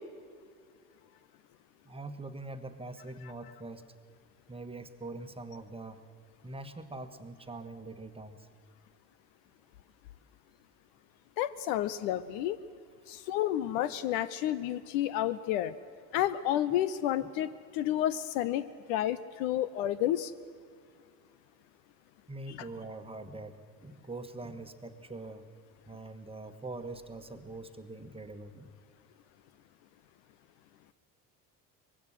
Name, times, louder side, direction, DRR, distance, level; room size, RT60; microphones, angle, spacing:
voice 1, 1.8-3.8 4.5-6.0 6.4-8.5 13.2-13.3 16.1-16.2 17.2-17.3 22.3-25.5 25.9-28.7, right 2 dB, 10° right, 8 dB, 1.5 m, -43 dB
voice 2, 11.4-12.6 13.1-15.7 16.1-20.3, left 12 dB, 55° left, 15 dB, 0.8 m, -30 dB
24.0 x 22.0 x 6.4 m, 2.2 s
figure-of-eight pair, 55°, 46 cm